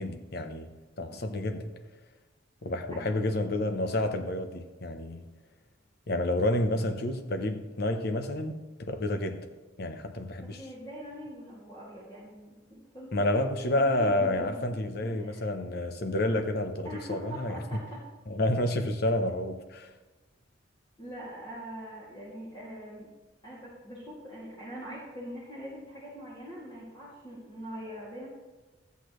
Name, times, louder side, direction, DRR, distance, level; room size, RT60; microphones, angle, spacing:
voice 1, 0.0-1.7 2.6-5.2 6.1-9.5 9.8-10.6 13.1-17.6 18.3-19.9, left 1 dB, 60° left, 7 dB, 0.9 m, -29 dB
voice 2, 2.9-3.4 10.4-13.1 13.6-14.6 15.0-15.4 16.8-18.0 21.0-23.1 23.4-28.3, equal, 25° left, -9 dB, 2.4 m, -43 dB
13.5 x 8.2 x 3.1 m, 1.2 s
head